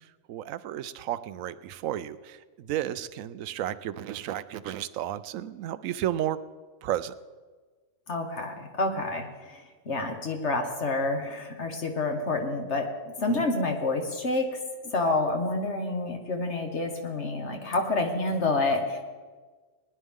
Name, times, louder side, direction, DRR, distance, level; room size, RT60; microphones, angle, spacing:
voice 1, 0.3-6.4 6.8-7.1 13.3-13.4, right 12 dB, 85° right, 15 dB, 1.0 m, -33 dB
voice 2, 8.1-9.6 9.9-14.5 14.9-19.0, left 2 dB, 60° left, 3 dB, 1.7 m, -28 dB
20.0 x 10.5 x 3.7 m, 1.4 s
omnidirectional pair, 1.4 m